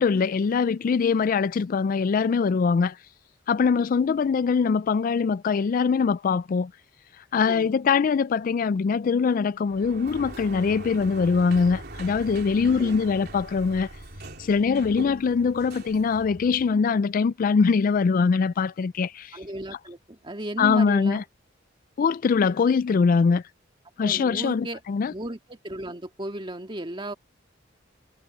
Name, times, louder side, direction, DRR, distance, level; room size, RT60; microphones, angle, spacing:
voice 1, 0.0-3.0 3.5-6.7 7.2-13.9 14.4-19.4 20.6-21.2 22.0-23.4 24.0-25.1, left 5 dB, 45° left, 0.3 m, -23 dB
Sliding door, 9.7-16.8, right 2 dB, 55° right, 3.5 m, -41 dB
voice 2, 19.3-21.2 24.0-24.8 25.1-27.1, right 1 dB, 25° right, 2.1 m, -35 dB
head